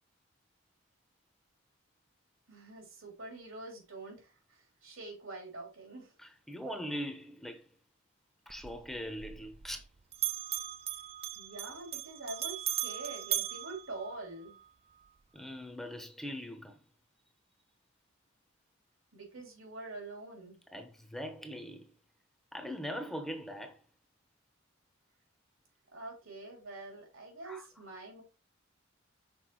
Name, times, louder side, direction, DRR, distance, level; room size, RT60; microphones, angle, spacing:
voice 1, 2.5-6.1 11.3-14.6 19.1-20.6 25.9-28.2, right 2 dB, 90° right, 3.3 m, -45 dB
voice 2, 6.2-7.7 8.5-9.8 15.3-16.8 20.7-21.9 22.5-23.8 27.4-27.6, equal, ahead, 0.8 m, -41 dB
Bell, 8.5-9.9 10.1-14.6, right 11 dB, 30° right, 0.4 m, -38 dB
6.2 x 4.3 x 4.6 m
head